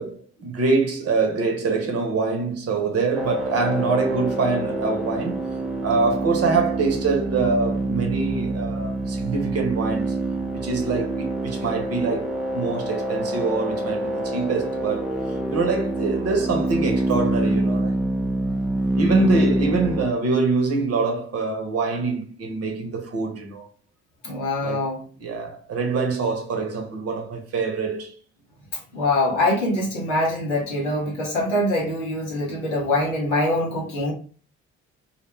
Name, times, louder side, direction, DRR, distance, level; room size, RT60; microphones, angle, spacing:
voice 1, 0.0-5.4 5.8-10.2 10.5-15.1 15.5-18.0 19.0-23.7 24.6-24.9 25.2-28.1, right 4 dB, 45° right, 0.8 m, -24 dB
sound 1, 3.2-20.1, right 1 dB, 5° right, 0.4 m, -26 dB
voice 2, 24.2-25.0 28.9-34.1, left 1 dB, 85° left, 0.8 m, -24 dB
2.4 x 2.1 x 3.1 m
figure-of-eight pair, 45°, 35 cm